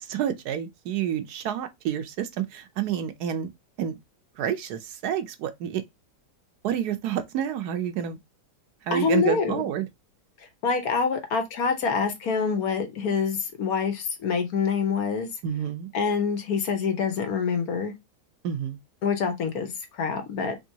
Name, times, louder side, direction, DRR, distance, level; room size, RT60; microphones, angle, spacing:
voice 1, 0.0-3.5 3.8-4.0 4.4-5.8 6.6-8.2 8.8-9.9 15.4-15.9 18.4-18.8, right 9 dB, 70° right, 1.1 m, -29 dB
voice 2, 8.9-9.6 10.6-15.3 15.9-17.9 19.0-20.6, left 5 dB, 65° left, 1.3 m, -26 dB
3.6 x 3.3 x 2.7 m
omnidirectional pair, 1.8 m